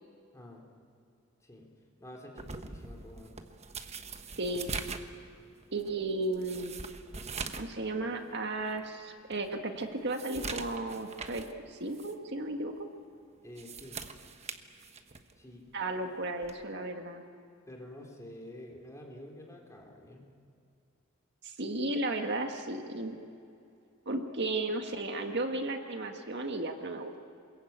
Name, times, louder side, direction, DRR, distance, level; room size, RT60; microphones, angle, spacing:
voice 1, 0.3-0.6 1.4-1.7 2.0-3.3 13.4-14.0 15.4-15.7 17.7-20.3, left 1 dB, 15° left, 0 dB, 3.7 m, -48 dB
sound 1, 2.4-7.8 8.1-8.2 8.8-8.9 9.3-11.6 11.9-12.1 13.4-15.3 16.4-16.7, right 4 dB, 30° right, 1.2 m, -42 dB
voice 2, 4.4-4.8 5.7-6.8 7.6-12.7 15.7-17.2 21.4-23.2 24.1-27.2, right 2 dB, 55° right, 4 dB, 1.8 m, -34 dB
28.0 x 22.0 x 8.8 m, 2.5 s
head